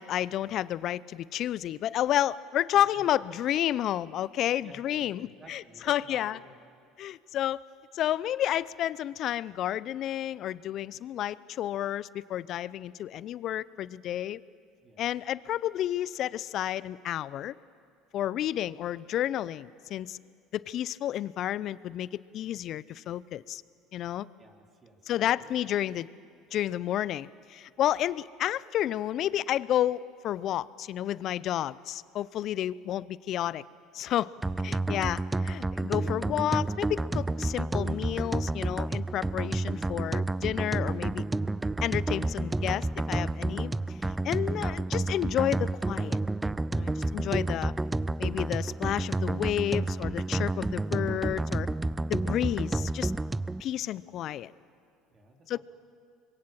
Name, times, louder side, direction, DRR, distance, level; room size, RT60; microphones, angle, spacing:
voice 1, 0.0-6.4 7.0-7.6 7.9-14.4 15.0-17.5 18.1-20.2 20.5-23.6 23.9-24.3 25.1-26.1 26.5-33.6 33.9-34.3 34.6-41.2 41.8-43.7 44.2-46.2 46.7-47.7 48.2-51.7 52.1-53.1 53.6-54.5 55.5-55.6, left 12 dB, 55° left, 20 dB, 0.6 m, -31 dB
voice 2, 2.7-3.3 4.6-6.5 14.8-15.1 24.4-25.6 34.4-34.9 55.1-55.6, right 2 dB, 30° right, 2 dB, 3.9 m, -54 dB
The Plan - Upbeat Loop - (No Voice Edit), 34.4-53.6, right 2 dB, 15° right, 0.5 m, -30 dB
sound 1, 39.0-46.9, left 1 dB, 5° left, 2.4 m, -53 dB
25.5 x 22.0 x 7.4 m, 2.3 s
hypercardioid pair, 70°, 0 cm